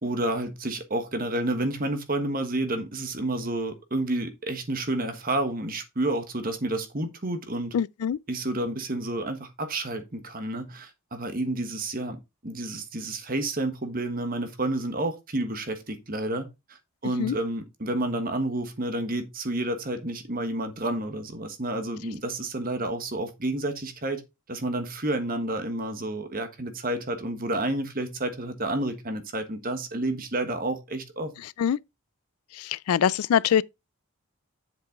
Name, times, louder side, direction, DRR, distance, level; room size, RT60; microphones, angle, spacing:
voice 1, 0.0-7.7 8.3-24.2 24.5-31.3, right 1 dB, 40° right, 1.4 m, -30 dB
voice 2, 7.7-8.2 17.2-17.4 31.6-31.8 32.5-33.6, left 8 dB, 80° left, 0.3 m, -23 dB
7.6 x 5.9 x 3.8 m
head